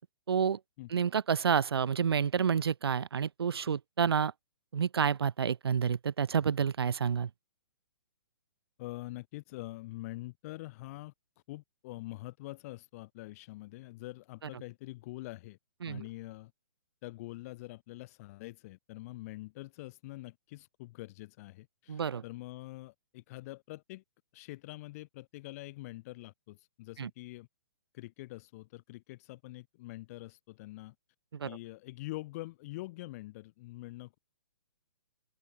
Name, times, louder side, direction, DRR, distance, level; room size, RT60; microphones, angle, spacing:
voice 1, 0.3-0.6 0.9-4.3 4.7-7.3 15.8-16.0 21.9-22.2 27.0-27.1 31.3-31.5, right 7 dB, 80° right, 0.5 m, -29 dB
voice 2, 8.8-11.1 11.5-15.6 15.9-16.5 17.0-24.0 24.3-27.5 27.9-30.9 31.4-34.2, left 19 dB, 40° left, 1.7 m, -45 dB
hypercardioid pair, 135°, 13 cm